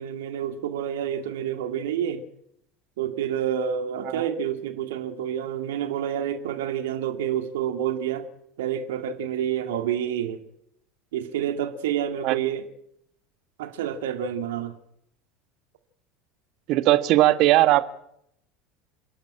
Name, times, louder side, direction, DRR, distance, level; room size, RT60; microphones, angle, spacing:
voice 1, 0.0-2.2 3.0-8.3 8.6-10.4 11.1-12.7 13.6-14.7, right 9 dB, 65° right, 8 dB, 2.1 m, -28 dB
voice 2, 16.7-17.9, right 16 dB, 50° right, 13 dB, 1.4 m, -19 dB
28.0 x 12.0 x 8.7 m, 0.76 s
figure-of-eight pair, 75°, 0 cm